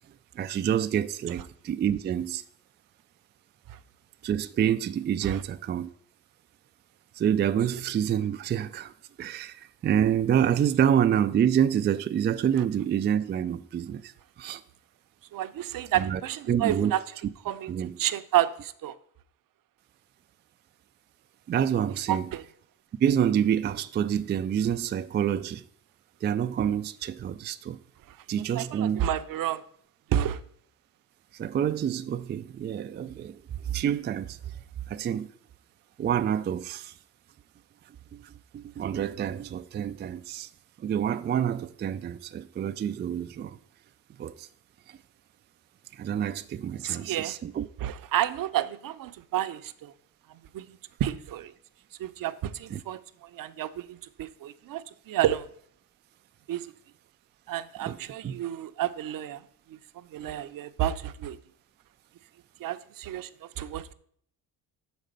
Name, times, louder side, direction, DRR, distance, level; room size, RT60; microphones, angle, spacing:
voice 1, 0.3-2.4 4.2-5.9 7.1-8.9 9.2-14.1 14.4-14.6 16.0-16.2 16.5-16.9 17.7-18.0 21.5-22.3 23.0-25.7 26.2-27.8 28.3-29.0 31.3-34.6 34.9-35.3 36.0-37.0 37.9-40.5 40.8-43.6 44.2-44.5 44.9-45.0 45.9-47.7 52.7-52.8 57.8-58.4, right 9 dB, 30° right, 0.3 m, -27 dB
voice 2, 15.3-17.0 17.4-17.7 18.0-19.0 22.1-22.4 28.1-28.2 28.5-29.6 30.1-30.4 46.8-47.4 47.8-49.9 50.3-51.5 52.0-55.5 56.5-56.7 57.5-59.4 59.7-61.4 62.6-63.9, right 12 dB, 55° right, 0.7 m, -30 dB
6.5 x 5.2 x 6.5 m
supercardioid pair, 75°, 40 cm